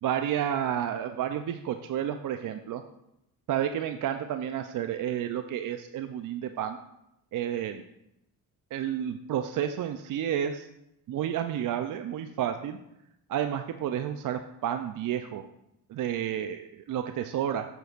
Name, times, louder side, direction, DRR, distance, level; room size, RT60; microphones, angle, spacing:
voice 1, 0.0-2.8 3.5-6.8 7.3-7.8 8.7-10.7 11.1-12.8 13.3-15.4 15.9-17.7, right 10 dB, 50° right, 7 dB, 0.5 m, -31 dB
7.8 x 6.1 x 2.4 m, 0.84 s
cardioid pair, 85°, 43 cm